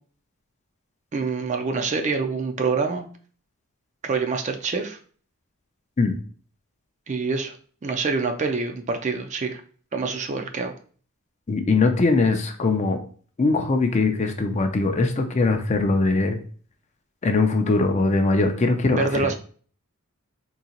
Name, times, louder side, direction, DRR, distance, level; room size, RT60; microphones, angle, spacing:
voice 1, 1.1-3.1 4.0-5.0 7.1-7.5 7.8-9.6 9.9-10.7 18.9-19.4, right 4 dB, 30° right, 5 dB, 0.4 m, -26 dB
voice 2, 11.5-13.0 13.4-16.4 17.2-19.4, left 3 dB, 30° left, 6 dB, 0.4 m, -21 dB
3.8 x 2.7 x 2.9 m, 0.43 s
head